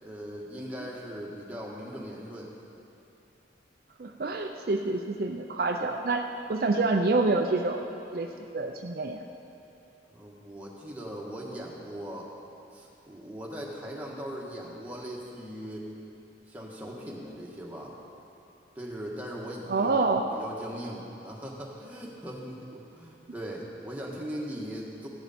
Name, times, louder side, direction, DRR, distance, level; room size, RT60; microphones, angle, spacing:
voice 1, 0.0-2.5 10.1-12.3 12.7-15.9 16.5-18.0 18.7-25.1, equal, 10° right, -3 dB, 1.5 m, -39 dB
voice 2, 4.0-7.8 8.1-9.2 19.7-20.3, right 3 dB, 55° right, 3 dB, 0.5 m, -27 dB
14.5 x 11.5 x 4.2 m, 2.8 s
head